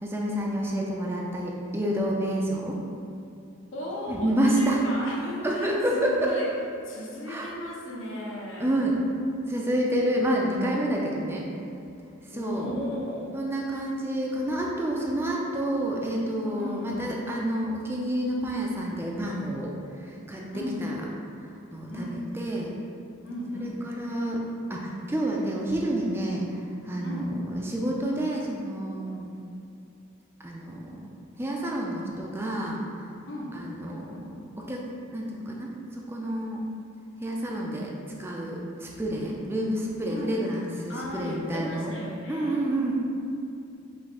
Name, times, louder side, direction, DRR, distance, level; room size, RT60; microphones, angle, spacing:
voice 1, 0.0-2.8 4.1-4.8 5.4-6.3 7.3-7.5 8.6-9.0 9.5-11.5 12.3-12.7 13.3-19.7 20.0-20.4 20.8-21.0 21.7-22.1 22.3-22.7 23.6-24.4 24.7-26.4 26.8-29.3 30.4-31.1 31.4-32.8 33.5-34.9 35.1-36.6 37.2-37.9 38.2-41.9 42.3-42.9, right 1 dB, 10° right, -2 dB, 0.4 m, -29 dB
voice 2, 3.7-6.5 6.8-8.8 12.3-13.4 16.5-17.1 20.5-21.0 21.9-22.3 23.2-23.8 27.0-27.3 33.3-33.6 40.1-40.6 40.9-42.7, left 1 dB, 65° left, -3 dB, 0.8 m, -36 dB
5.1 x 2.4 x 3.6 m, 2.6 s
head